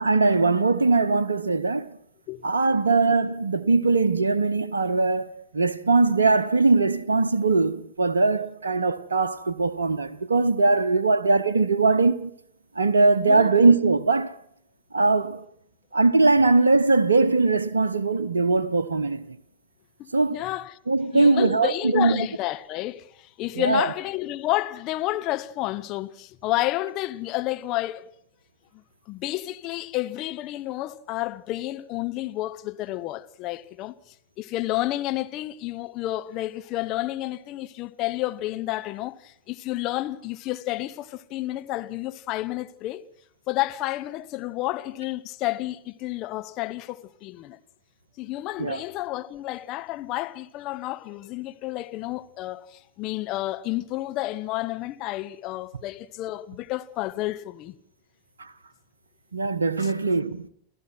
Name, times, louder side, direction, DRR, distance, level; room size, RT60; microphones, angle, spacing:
voice 1, 0.0-2.0 2.4-12.3 12.8-14.4 14.9-15.4 15.9-19.4 20.1-20.4 20.9-22.2 23.6-23.9 48.6-48.8 58.4-58.5 59.3-60.5, right 3 dB, 75° right, 0.8 m, -21 dB
voice 2, 20.0-20.8 21.1-28.1 29.1-33.9 34.4-43.1 43.5-47.6 48.2-57.8 59.8-59.9, left 17 dB, 40° left, 1.0 m, -30 dB
28.5 x 15.0 x 6.1 m
figure-of-eight pair, 90°, 0 cm